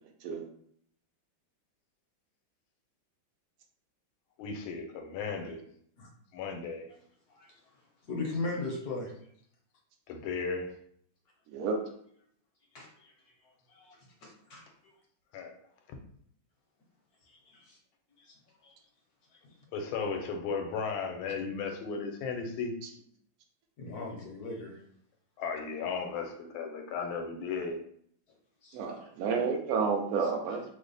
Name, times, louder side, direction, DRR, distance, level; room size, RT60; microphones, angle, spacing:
voice 1, 4.4-5.6 6.3-6.9 10.1-10.7 15.3-15.6 19.7-22.7 25.4-27.8, left 5 dB, 80° left, 4 dB, 1.4 m, -35 dB
voice 2, 7.3-7.6 8.0-9.1 12.7-13.1 13.7-14.9 17.3-17.8 18.2-18.4 18.6-18.7 19.4-19.5 23.8-24.8 28.6-29.1 30.2-30.3, left 3 dB, 65° left, -1 dB, 1.0 m, -39 dB
voice 3, 28.7-30.6, right 5 dB, 80° right, 3 dB, 0.7 m, -30 dB
3.3 x 2.1 x 3.8 m, 0.65 s
omnidirectional pair, 2.2 m